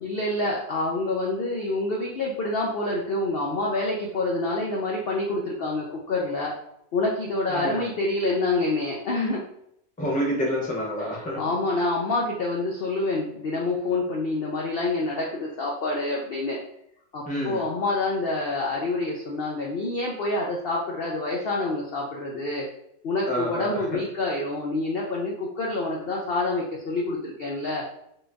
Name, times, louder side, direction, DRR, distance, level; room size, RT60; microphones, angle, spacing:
voice 1, 0.0-6.5 6.9-9.4 11.0-16.6 17.1-22.6 23.0-27.8, left 2 dB, 65° left, -2 dB, 0.6 m, -27 dB
voice 2, 7.5-7.9 10.0-11.4 17.3-17.6 23.3-24.0, equal, 10° left, -2 dB, 0.4 m, -28 dB
3.7 x 2.5 x 3.4 m, 0.74 s
omnidirectional pair, 1.6 m